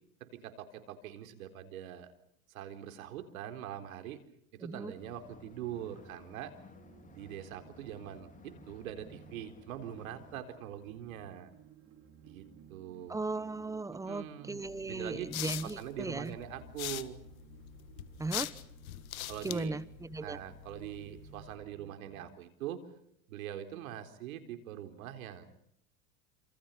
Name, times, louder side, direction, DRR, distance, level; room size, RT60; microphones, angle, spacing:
voice 1, 0.3-2.1 2.5-4.2 4.5-6.5 7.1-11.5 12.2-13.2 13.9-15.3 15.6-17.2 19.3-19.8 20.2-22.8 23.3-25.5, right 11 dB, 85° right, 7 dB, 4.1 m, -43 dB
voice 2, 4.6-4.9 13.1-16.3 18.2-18.5 19.4-20.4, right 3 dB, 10° right, 17 dB, 1.0 m, -37 dB
sound 1, 4.9-10.4, left 4 dB, 20° left, 3.6 m, -56 dB
sound 2, 6.7-22.2, right 8 dB, 40° right, 5.5 m, -58 dB
sound 3, 14.6-21.6, left 14 dB, 85° left, 1.6 m, -43 dB
28.5 x 27.0 x 5.7 m, 0.73 s
supercardioid pair, 120°, 40 cm